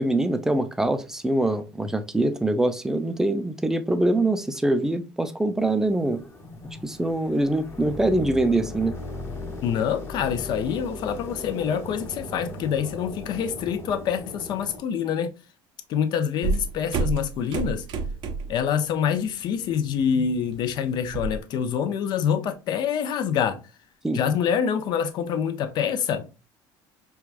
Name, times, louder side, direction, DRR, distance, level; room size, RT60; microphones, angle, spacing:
voice 1, 0.0-6.2 6.8-9.0 24.0-24.2, right 1 dB, 5° right, 0.4 m, -24 dB
sound 1, 5.6-14.8, left 2 dB, 25° left, 1.1 m, -38 dB
voice 2, 9.6-15.3 15.9-17.8 18.5-23.6 24.1-26.3, left 8 dB, 55° left, 0.6 m, -26 dB
sound 2, 16.4-18.7 19.0-19.3 19.7-21.4, right 4 dB, 60° right, 0.5 m, -29 dB
4.6 x 2.3 x 2.4 m
cardioid pair, 130°, 9 cm